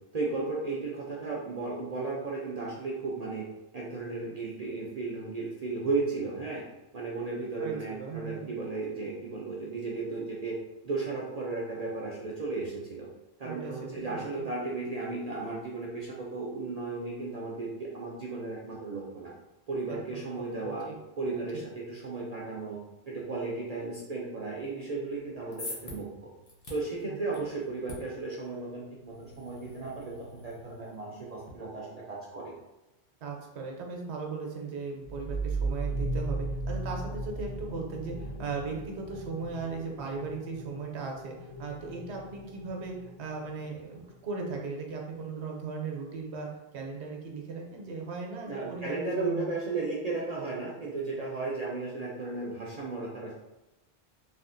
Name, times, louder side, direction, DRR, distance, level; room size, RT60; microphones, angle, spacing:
voice 1, 0.1-3.4 3.7-6.6 6.9-10.6 10.8-13.1 13.4-19.3 19.7-20.9 21.2-22.8 23.1-26.1 26.7-32.5 48.5-53.3, right 3 dB, 50° right, -5 dB, 0.5 m, -35 dB
voice 2, 7.6-8.5 13.4-14.2 19.9-21.0 21.3-21.4 27.1-27.5 33.2-49.5, right 4 dB, 85° right, 0 dB, 1.0 m, -38 dB
sound 1, 25.2-31.5, left 1 dB, 40° left, 0.7 m, -47 dB
sound 2, 35.0-44.4, right 2 dB, 80° left, 1.0 m, -37 dB
3.4 x 2.4 x 2.5 m, 0.98 s
omnidirectional pair, 1.1 m